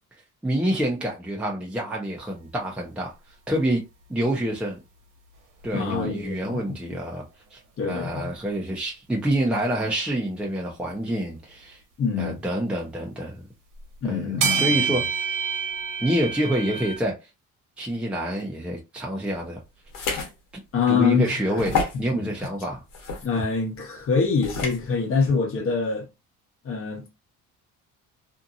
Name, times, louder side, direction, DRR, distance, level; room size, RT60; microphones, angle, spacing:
voice 1, 0.4-3.1 3.5-3.8 4.1-4.8 5.6-7.2 7.5-11.8 12.2-13.4 14.0-15.3 16.0-17.2 17.8-19.6 20.9-22.8, right 1 dB, 5° right, 0.6 m, -27 dB
sound 1, 5.6-5.7 10.9-11.0 12.8-12.9 14.4-17.0, right 6 dB, 70° right, 1.1 m, -26 dB
voice 2, 5.7-7.0 7.8-8.3 12.0-12.4 14.0-15.1 20.7-21.3 22.1-22.5 23.2-26.1 26.6-27.1, left 5 dB, 45° left, 1.0 m, -25 dB
sound 2, 19.9-20.3 20.8-20.9 21.6-22.0 22.9-23.3 24.4-24.8, left 4 dB, 85° left, 1.1 m, -28 dB
2.7 x 2.5 x 2.5 m
cardioid pair, 130°, 32 cm